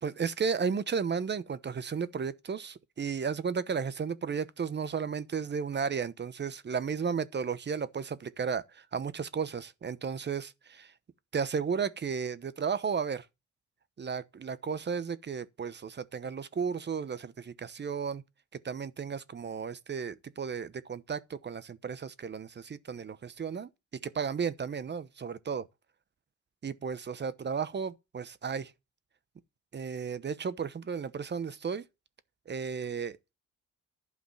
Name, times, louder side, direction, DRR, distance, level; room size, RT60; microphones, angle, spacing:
voice 1, 0.0-10.9 11.3-13.2 14.0-18.2 18.6-23.7 24.0-25.6 26.6-28.7 29.7-31.8 32.5-33.3, right 6 dB, 35° right, 1.0 m, -34 dB
11.5 x 5.0 x 7.2 m
cardioid pair, 90°, 30 cm